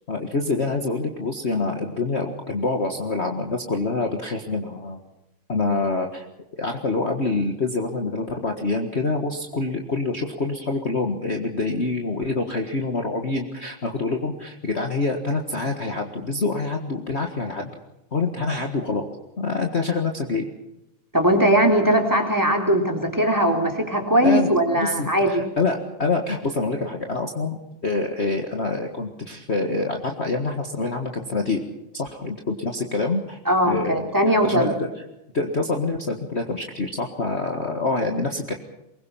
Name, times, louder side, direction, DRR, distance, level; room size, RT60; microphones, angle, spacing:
voice 1, 0.1-5.0 5.5-6.3 6.6-17.7 18.1-19.1 19.4-20.5 24.2-31.7 31.9-34.9 35.3-38.5, left 3 dB, 35° left, 3 dB, 1.9 m, -26 dB
voice 2, 21.1-25.4 33.5-34.7, right 1 dB, 10° right, 2 dB, 3.6 m, -20 dB
24.0 x 22.0 x 5.8 m, 0.90 s
omnidirectional pair, 2.2 m